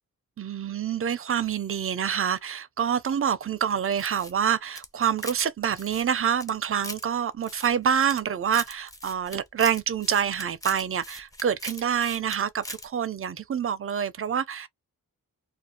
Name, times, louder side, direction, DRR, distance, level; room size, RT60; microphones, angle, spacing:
voice 1, 0.4-14.7, right 8 dB, 40° right, 0.4 m, -27 dB
sound 1, 3.9-5.5 5.7-7.1 7.4-8.2 8.5-12.4 12.6-12.9, left 1 dB, 10° left, 0.6 m, -40 dB
2.5 x 2.0 x 2.7 m
cardioid pair, 75°, 34 cm